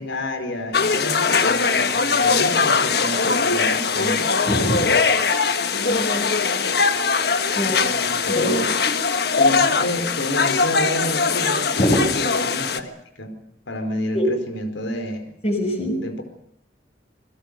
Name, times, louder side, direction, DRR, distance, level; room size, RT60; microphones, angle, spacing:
voice 1, 0.0-4.3 7.7-8.7 9.4-12.9 13.2-13.4 13.7-15.2 16.0-16.2, left 1 dB, 85° left, 7 dB, 4.6 m, -29 dB
sound 1, 0.7-12.8, left 5 dB, 60° left, 1.4 m, -21 dB
voice 2, 4.5-4.8 5.9-6.4 7.6-7.8 8.3-8.5 8.9-9.0 11.8-12.1 14.1-14.3 15.4-16.0, equal, 35° left, 4 dB, 6.0 m, -23 dB
28.5 x 21.5 x 6.8 m, 0.69 s
head